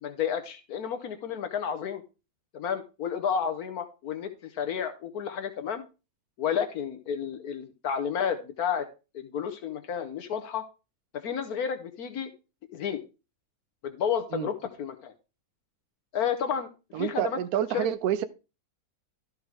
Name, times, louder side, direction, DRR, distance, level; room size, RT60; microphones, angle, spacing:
voice 1, 0.0-2.0 2.5-5.8 6.4-8.9 9.1-10.6 11.1-12.3 12.7-13.0 13.8-15.1 16.1-16.7 17.0-17.4 17.7-17.9, left 7 dB, 80° left, 1.4 m, -31 dB
voice 2, 16.9-18.2, right 10 dB, 80° right, 1.2 m, -28 dB
13.0 x 5.3 x 4.7 m
omnidirectional pair, 1.6 m